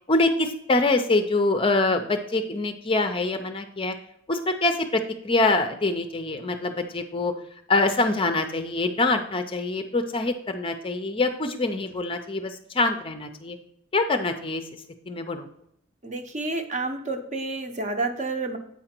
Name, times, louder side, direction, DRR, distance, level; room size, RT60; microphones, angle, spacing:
voice 1, 0.1-3.9 4.3-7.3 7.7-13.6 13.9-14.6 15.1-15.5, left 2 dB, 25° left, 7 dB, 0.5 m, -24 dB
voice 2, 16.0-18.6, right 3 dB, 35° right, 6 dB, 0.8 m, -29 dB
8.4 x 4.9 x 4.4 m, 0.75 s
head